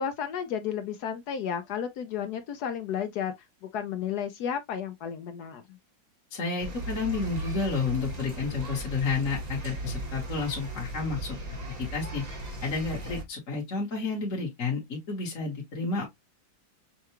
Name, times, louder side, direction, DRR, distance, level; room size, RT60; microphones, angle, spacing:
voice 1, 0.0-3.3 3.6-5.8, left 8 dB, 70° left, 0.9 m, -32 dB
voice 2, 6.3-11.4 11.8-12.2 12.6-16.1, left 4 dB, 45° left, 1.4 m, -31 dB
sound 1, 6.6-13.2, right 1 dB, 30° right, 0.9 m, -37 dB
5.6 x 2.4 x 2.9 m
omnidirectional pair, 2.1 m